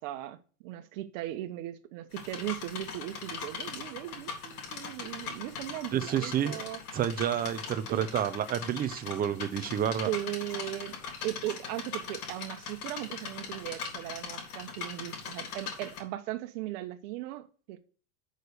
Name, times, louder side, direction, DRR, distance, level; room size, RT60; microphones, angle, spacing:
voice 1, 0.0-6.8 7.9-8.0 10.0-10.9 11.2-17.8, right 15 dB, 55° right, 1.3 m, -38 dB
sound 1, 2.1-16.0, left 5 dB, 85° left, 3.8 m, -40 dB
voice 2, 5.9-6.6 6.9-10.1, right 10 dB, 20° right, 0.6 m, -29 dB
6.6 x 6.3 x 6.8 m
supercardioid pair, 135°, 44 cm